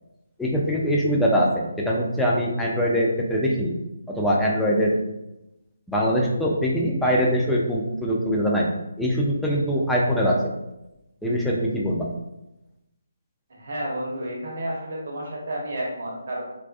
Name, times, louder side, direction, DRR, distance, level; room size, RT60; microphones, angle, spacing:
voice 1, 0.4-3.7 4.1-4.9 5.9-8.7 9.0-10.4 11.2-12.1, equal, 5° left, -4 dB, 0.4 m, -22 dB
voice 2, 13.5-16.4, right 1 dB, 55° right, -2 dB, 0.8 m, -31 dB
2.4 x 2.2 x 2.3 m, 0.92 s
figure-of-eight pair, 150°, 0 cm